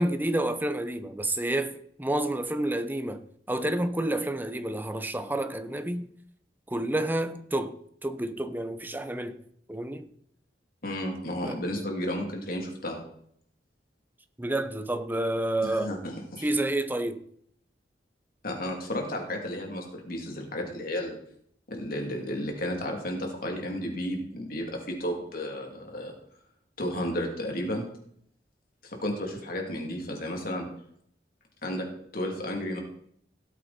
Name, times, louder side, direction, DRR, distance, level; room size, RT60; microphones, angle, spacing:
voice 1, 0.0-6.1 6.7-7.8 8.0-9.4 9.7-10.1 11.4-11.6 14.4-15.9 16.4-17.2, right 1 dB, 10° right, 0.9 m, -29 dB
voice 2, 10.8-13.0 15.6-16.6 18.4-21.2 21.7-26.1 26.8-27.8 28.8-30.7 31.6-31.9 32.1-32.8, left 1 dB, 55° left, 3.1 m, -33 dB
17.5 x 8.2 x 4.4 m
head